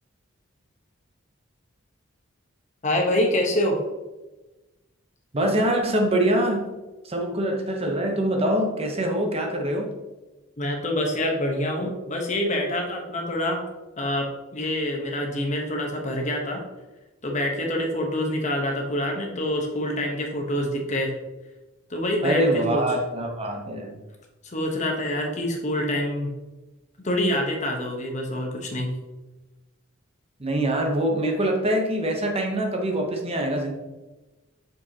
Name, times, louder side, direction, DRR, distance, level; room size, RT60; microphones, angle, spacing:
voice 1, 2.8-3.8 10.6-13.6 14.0-14.3 14.5-16.6 17.2-21.1 21.9-22.8 24.4-26.3 27.0-28.9, left 1 dB, 35° left, 1 dB, 1.0 m, -26 dB
voice 2, 5.3-6.7 7.0-9.9 22.2-24.0 30.4-33.7, right 1 dB, 30° right, 2 dB, 0.9 m, -24 dB
6.3 x 5.3 x 2.9 m, 1.1 s
head